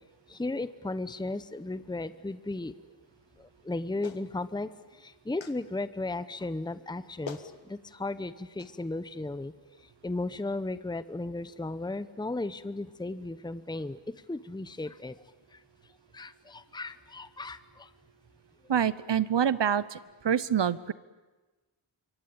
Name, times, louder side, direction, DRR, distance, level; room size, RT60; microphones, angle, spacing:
voice 1, 0.3-2.7 3.4-9.5 9.8-14.0 14.3-15.2 15.5-15.6 16.1-17.9, left 2 dB, 10° left, 13 dB, 0.9 m, -35 dB
Clapping, 4.0-4.3 5.4-5.6 6.8-6.9 7.3-7.5 8.6-8.7, left 5 dB, 70° left, 1.9 m, -42 dB
voice 2, 18.7-20.0 20.2-20.9, right 8 dB, 60° right, 17 dB, 1.0 m, -26 dB
26.5 x 24.0 x 8.7 m, 1.2 s
wide cardioid pair, 75°, 48 cm